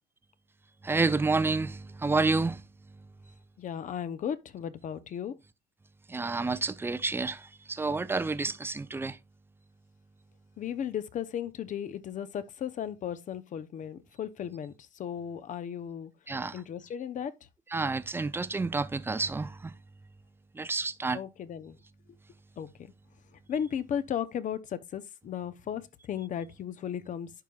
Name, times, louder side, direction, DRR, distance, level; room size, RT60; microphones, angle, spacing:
voice 1, 0.8-2.7 6.1-9.2 16.3-16.6 17.7-19.8 20.5-21.2, right 3 dB, 15° right, 0.5 m, -29 dB
voice 2, 3.6-5.4 10.6-16.1 16.5-17.3 21.1-21.8 22.6-22.9 23.5-27.3, left 9 dB, 50° left, 0.8 m, -35 dB
11.5 x 4.7 x 2.4 m
cardioid pair, 110°, 17 cm